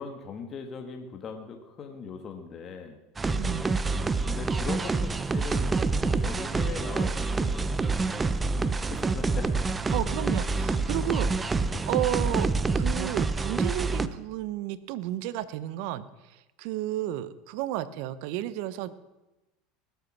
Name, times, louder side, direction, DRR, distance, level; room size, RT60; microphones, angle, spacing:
voice 1, 0.0-3.0 3.9-5.8 6.2-9.6 11.0-11.4 11.6-11.9, left 5 dB, 35° left, 5 dB, 1.5 m, -40 dB
sound 1, 3.2-14.1, right 3 dB, 15° right, 0.7 m, -27 dB
voice 2, 3.3-3.7 9.9-11.3 11.9-12.5 12.7-18.9, right 13 dB, 70° right, 15 dB, 0.9 m, -32 dB
19.5 x 8.1 x 6.1 m, 1.0 s
supercardioid pair, 115°, 0 cm